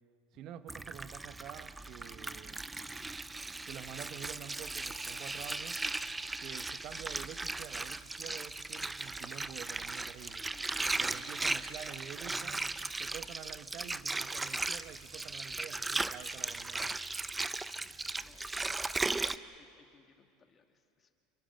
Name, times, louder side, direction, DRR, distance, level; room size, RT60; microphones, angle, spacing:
voice 1, 0.3-2.6 3.7-5.8 6.4-10.4 11.0-12.6 13.0-17.0, right 11 dB, 55° right, 13 dB, 1.0 m, -48 dB
Water, 0.7-19.4, right 3 dB, 10° right, 0.7 m, -37 dB
voice 2, 10.3-10.7 11.1-11.9 17.8-17.9 18.2-18.9 19.3-21.1, left 6 dB, 25° left, 5 dB, 2.4 m, -63 dB
29.0 x 24.0 x 6.6 m, 2.6 s
supercardioid pair, 115°, 0 cm